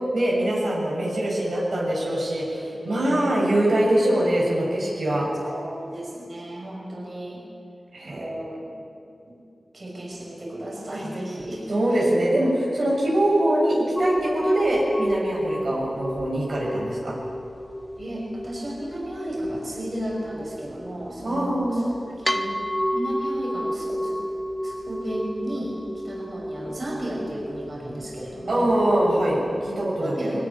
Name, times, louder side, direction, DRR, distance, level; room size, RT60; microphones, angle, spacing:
voice 1, 0.1-5.3 7.9-8.3 11.7-17.1 21.2-21.9 28.5-30.4, right 1 dB, 70° right, -3 dB, 6.6 m, -23 dB
voice 2, 3.0-3.5 5.4-7.4 8.0-8.7 9.7-12.1 18.0-22.6 22.9-24.2 24.6-25.8 26.0-28.7 30.0-30.4, right 1 dB, 40° right, -3 dB, 5.9 m, -34 dB
sound 1, 14.0-29.9, equal, 10° left, 1.1 m, -32 dB
22.0 x 19.0 x 10.0 m, 2.5 s
wide cardioid pair, 115°, 0 cm